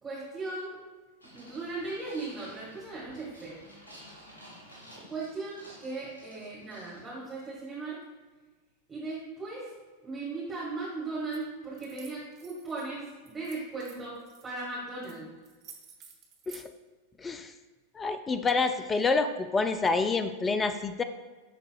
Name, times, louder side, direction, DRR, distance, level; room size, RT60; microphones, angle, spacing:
voice 1, 0.0-0.8 1.3-3.6 5.1-8.0 8.9-9.7 10.0-14.2 14.4-15.3, right 3 dB, 15° right, -9 dB, 1.9 m, -37 dB
sound 1, 1.2-7.1, equal, 75° left, 1.5 m, -52 dB
sound 2, 11.2-11.4 11.7-12.9 13.3-14.4 15.0-15.2 15.4-16.7, right 7 dB, 35° right, 1.1 m, -52 dB
voice 2, 17.2-17.5 17.9-21.0, left 4 dB, 15° left, 9 dB, 0.4 m, -27 dB
11.0 x 3.9 x 2.3 m, 1.3 s
figure-of-eight pair, 90°, 0 cm